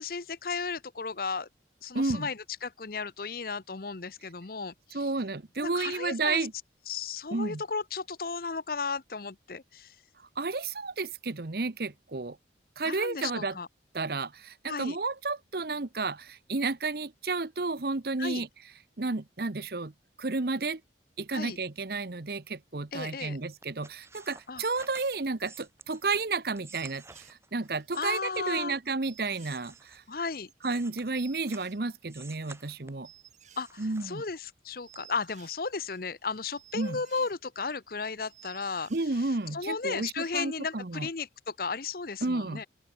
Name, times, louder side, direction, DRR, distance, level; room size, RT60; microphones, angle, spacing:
voice 1, 0.0-1.5 1.8-5.0 5.6-6.5 6.9-9.9 12.8-13.7 14.7-15.0 18.2-18.4 21.3-21.6 22.9-23.4 24.5-24.6 28.0-28.8 30.1-30.5 33.6-38.9 39.5-42.7, left 4 dB, 50° left, 0.8 m, -34 dB
voice 2, 1.9-2.3 4.9-6.5 7.3-7.6 10.2-12.4 12.8-13.6 13.9-18.5 19.0-19.9 20.2-20.8 21.2-30.0 30.6-33.1 33.8-34.2 36.7-37.0 38.9-41.1 42.2-42.6, right 3 dB, 55° right, 1.0 m, -32 dB
sound 1, 23.6-28.9 29.3-31.7 32.1-33.1 33.5-34.6 34.9-35.0, right 4 dB, 15° right, 6.9 m, -52 dB
sound 2, 24.4-25.2 25.8-25.9 26.1-26.2 26.4-26.5 26.7-28.0 28.5-28.6 29.0-32.2 32.5-32.7 33.0-34.4 34.7-37.9 38.2-39.6 39.8-39.9, right 11 dB, 40° right, 4.1 m, -56 dB
open air
head